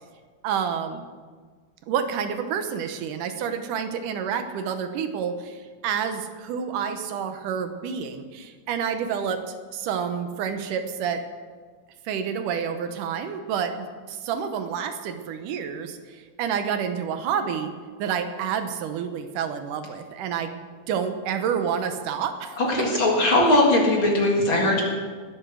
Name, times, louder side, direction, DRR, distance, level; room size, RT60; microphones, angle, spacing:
voice 1, 0.4-1.0 1.9-9.4 9.7-11.2 12.1-17.7 18.0-22.6 23.2-23.3, right 7 dB, 80° right, 8 dB, 2.4 m, -29 dB
voice 2, 22.6-24.8, left 1 dB, 40° left, -1 dB, 2.5 m, -20 dB
20.0 x 8.0 x 6.3 m, 1.5 s
omnidirectional pair, 3.8 m